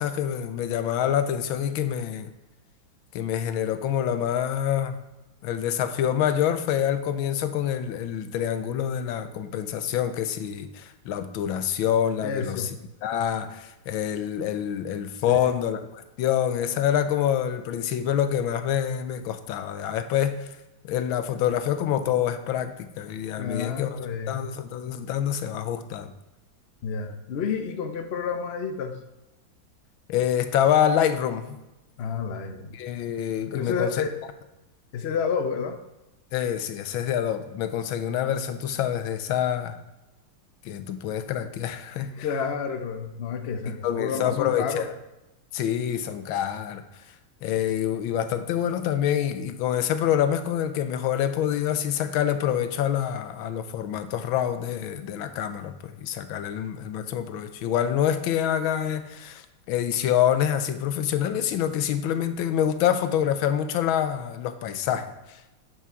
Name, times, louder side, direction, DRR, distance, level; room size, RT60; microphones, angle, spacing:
voice 1, 0.0-2.3 3.1-5.0 5.4-12.7 13.0-20.6 20.8-24.0 24.3-26.1 30.1-31.6 32.7-34.0 36.3-39.8 40.6-42.2 43.8-44.9 45.5-47.2 47.4-65.5, left 10 dB, 85° left, 10 dB, 1.5 m, -26 dB
voice 2, 12.2-12.7 15.3-15.5 23.4-24.4 26.8-29.0 32.0-32.8 33.5-34.1 34.9-35.8 42.2-44.8, left 6 dB, 65° left, 6 dB, 0.6 m, -30 dB
9.7 x 6.1 x 4.5 m, 0.99 s
omnidirectional pair, 2.2 m